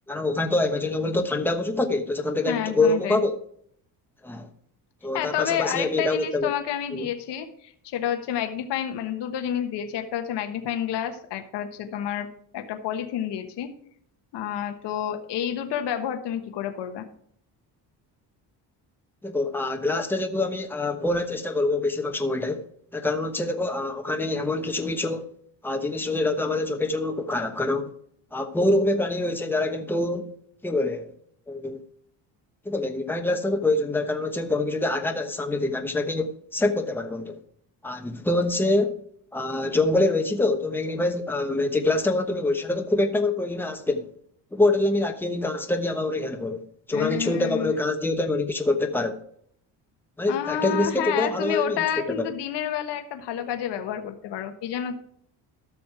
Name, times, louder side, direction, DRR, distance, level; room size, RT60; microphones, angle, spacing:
voice 1, 0.1-3.4 4.2-4.5 5.0-6.5 6.9-7.1 19.2-22.6 22.9-25.3 25.6-27.9 28.3-30.3 30.6-31.1 31.5-31.8 32.6-37.4 37.8-39.0 39.3-44.1 44.5-46.6 46.9-49.2 50.2-51.9 52.1-52.3, left 2 dB, 5° left, 1.0 m, -25 dB
voice 2, 2.5-3.2 5.1-12.3 12.5-13.7 14.3-17.0 46.9-47.7 50.3-55.0, left 9 dB, 75° left, 1.3 m, -29 dB
13.0 x 6.2 x 4.8 m
cardioid pair, 110°, 42 cm